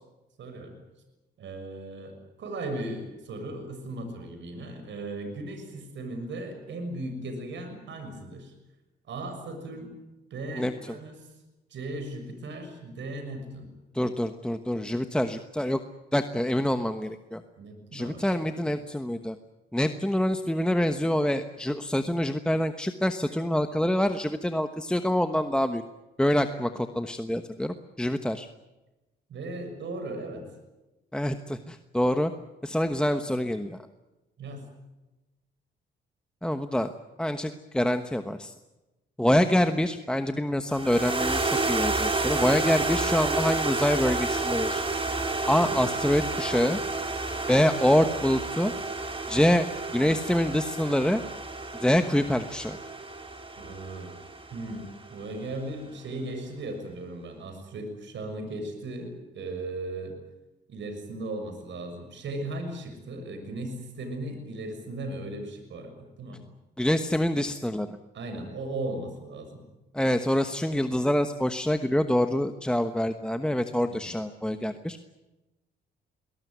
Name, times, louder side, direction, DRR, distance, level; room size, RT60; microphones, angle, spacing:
voice 1, 0.4-0.8 1.4-8.5 9.1-9.9 10.3-11.1 11.7-13.7 17.6-18.7 29.3-30.4 34.4-34.6 45.6-45.9 53.6-54.1 54.5-60.2 60.7-66.4 68.1-69.6 73.9-74.1, right 2 dB, 65° right, 6 dB, 6.6 m, -37 dB
voice 2, 13.9-15.8 16.1-17.4 17.9-19.4 19.7-25.8 26.2-28.5 31.1-32.3 32.6-33.8 36.4-36.9 37.2-38.5 39.2-44.8 45.5-46.8 47.5-48.7 49.3-49.7 49.9-51.2 51.8-52.8 66.8-68.0 69.9-75.0, left 1 dB, 5° left, 8 dB, 1.2 m, -26 dB
sound 1, 40.7-55.2, right 3 dB, 25° right, 3.6 m, -30 dB
22.5 x 18.5 x 9.4 m, 1.0 s
cardioid pair, 90°, 20 cm